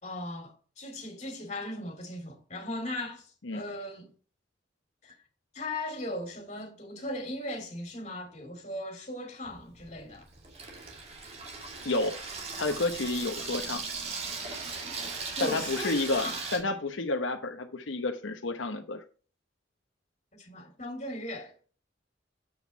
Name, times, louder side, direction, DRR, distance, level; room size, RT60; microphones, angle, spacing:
voice 1, 0.0-4.1 5.0-5.1 5.5-10.3 15.3-16.4 20.3-21.5, left 1 dB, 35° left, 2.6 m, -38 dB
Water tap faucet / Sink (filling or washing), 9.5-16.6, right 4 dB, 35° right, 2.2 m, -38 dB
voice 2, 12.6-13.8 15.4-19.0, left 2 dB, 85° left, 0.9 m, -30 dB
7.8 x 6.1 x 4.4 m
head